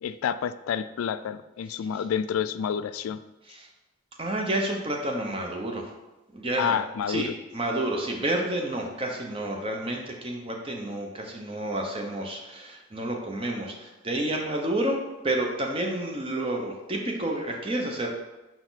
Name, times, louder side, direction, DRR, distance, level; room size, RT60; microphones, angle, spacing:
voice 1, 0.0-3.2 6.6-7.3, left 8 dB, 85° left, 13 dB, 0.3 m, -29 dB
voice 2, 4.2-5.9 6.3-6.8 7.1-15.0 15.2-18.1, right 1 dB, 25° right, 1 dB, 0.8 m, -30 dB
5.8 x 4.3 x 4.0 m, 1.1 s
head